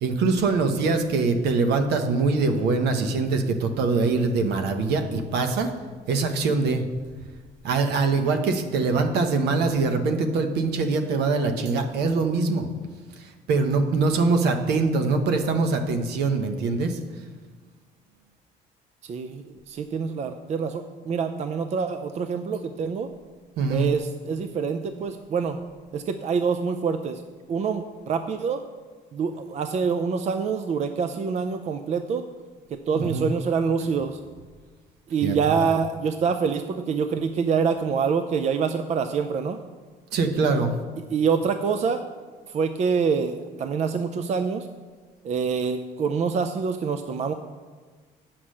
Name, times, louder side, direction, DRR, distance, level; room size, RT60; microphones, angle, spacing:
voice 1, 0.0-5.7 6.1-6.8 7.6-12.7 13.5-17.0 23.6-23.9 32.9-33.3 35.2-35.3 40.1-40.8, right 4 dB, 80° right, 6 dB, 1.0 m, -23 dB
voice 2, 19.0-23.1 23.7-25.6 25.9-27.2 27.5-28.6 29.1-32.2 32.7-34.2 35.1-39.6 41.1-42.0 42.5-44.7 45.2-47.3, right 5 dB, 40° right, 8 dB, 0.5 m, -26 dB
8.3 x 5.9 x 6.3 m, 1.5 s
cardioid pair, 110°, 17 cm